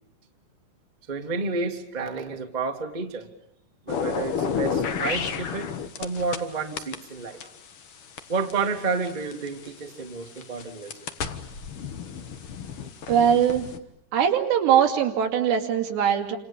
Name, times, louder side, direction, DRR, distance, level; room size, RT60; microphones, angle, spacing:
voice 1, 1.1-3.3 3.8-5.7 6.0-7.5 8.3-11.0, right 4 dB, 15° right, 3 dB, 1.5 m, -30 dB
sound 1, 3.9-6.4 6.8-9.7 10.3-13.8, left 6 dB, 55° left, 1.5 m, -31 dB
voice 2, 13.1-13.7 14.1-16.4, right 8 dB, 90° right, 4 dB, 4.7 m, -21 dB
30.0 x 27.0 x 7.2 m, 0.72 s
omnidirectional pair, 4.8 m